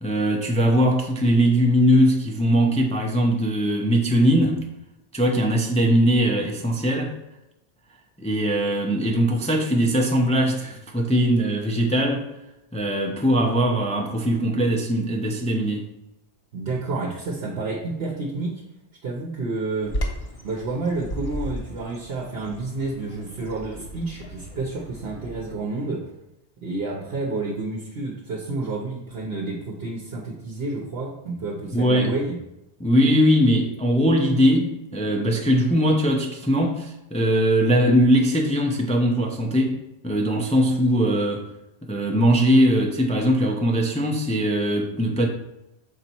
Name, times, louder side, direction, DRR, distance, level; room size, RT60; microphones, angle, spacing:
voice 1, 0.0-4.6 5.1-7.1 8.2-12.3 12.7-15.8 31.7-32.1 32.8-39.8 40.0-41.4 41.8-45.3, equal, 10° left, 1 dB, 0.5 m, -20 dB
voice 2, 16.5-18.5 19.0-19.9 20.4-26.0 26.6-32.4, right 3 dB, 65° right, -1 dB, 1.1 m, -29 dB
Bird vocalization bird call bird song, 19.8-25.5, equal, 35° left, 0.9 m, -35 dB
6.5 x 4.1 x 4.4 m, 0.89 s
omnidirectional pair, 1.2 m